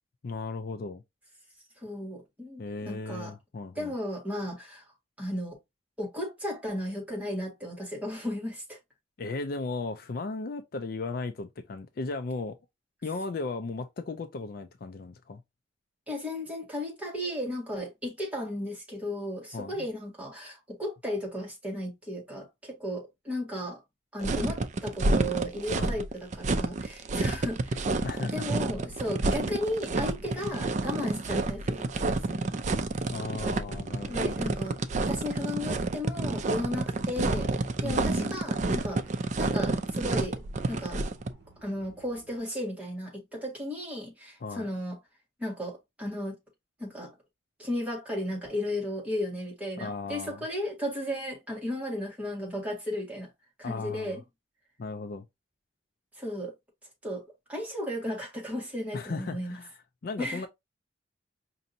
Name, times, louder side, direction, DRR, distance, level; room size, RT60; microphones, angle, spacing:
voice 1, 0.2-1.0 2.6-3.9 9.2-12.6 13.0-15.4 19.5-19.9 25.7-26.0 28.0-28.5 33.1-34.4 37.8-38.3 44.4-44.7 49.8-50.4 53.6-54.2 54.8-55.2 58.9-59.7 60.0-60.5, left 3 dB, 50° left, 0.4 m, -36 dB
voice 2, 1.8-3.3 3.8-4.8 5.2-5.6 6.0-8.8 16.1-23.8 24.1-27.9 28.3-32.5 34.1-37.5 37.8-40.4 40.6-41.0 41.6-45.0 45.4-46.3 46.8-47.1 47.6-53.3 53.6-54.2 56.2-56.5 57.0-57.2 57.5-59.6 60.2-60.4, left 1 dB, 5° right, 1.8 m, -35 dB
sound 1, 24.2-41.3, right 3 dB, 40° right, 0.4 m, -29 dB
sound 2, 28.2-42.4, right 3 dB, 60° right, 0.8 m, -53 dB
5.2 x 2.7 x 2.7 m
head